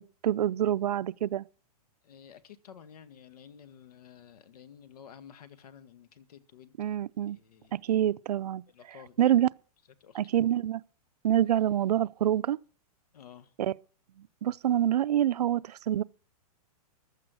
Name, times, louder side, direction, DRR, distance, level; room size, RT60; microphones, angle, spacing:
voice 1, 0.0-1.4 6.8-7.4 7.7-8.6 9.2-9.5 10.1-10.8 11.2-12.6 13.6-13.7 14.4-16.0, right 11 dB, 90° right, 0.6 m, -26 dB
voice 2, 2.0-7.0 7.2-7.8 8.7-9.3 10.0-10.2 13.1-13.5, left 8 dB, 75° left, 1.8 m, -52 dB
15.0 x 12.0 x 6.2 m
hypercardioid pair, 165°, 20 cm